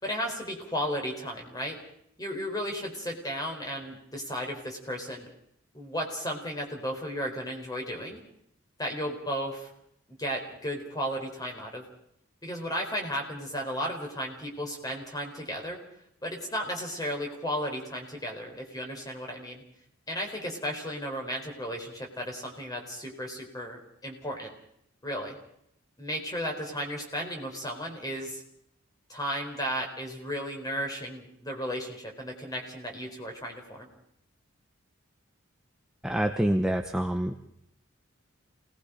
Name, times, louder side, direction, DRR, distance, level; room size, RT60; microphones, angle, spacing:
voice 1, 0.0-1.8 2.2-5.3 5.7-8.2 8.8-9.7 10.2-11.8 12.4-15.8 16.2-19.6 20.1-24.5 25.0-25.4 26.0-28.4 29.1-33.9, equal, 20° left, 2 dB, 4.2 m, -34 dB
voice 2, 36.0-37.3, right 1 dB, 5° right, 4 dB, 0.9 m, -26 dB
28.0 x 19.5 x 5.1 m, 0.73 s
head